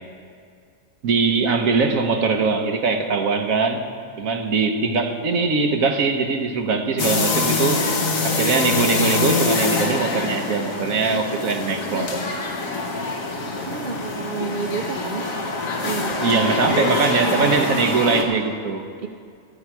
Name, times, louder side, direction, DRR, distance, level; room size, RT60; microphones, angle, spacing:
voice 1, 1.0-3.9 4.2-7.8 8.2-12.2 16.2-18.9, right 4 dB, 90° right, 6 dB, 1.4 m, -21 dB
sound 1, 7.0-18.2, left 3 dB, 75° left, 1.8 m, -24 dB
voice 2, 13.7-15.2 15.8-16.4 17.2-17.5 19.0-19.1, right 6 dB, 50° right, 3 dB, 0.7 m, -30 dB
13.5 x 12.5 x 4.7 m, 2.3 s
omnidirectional pair, 1.4 m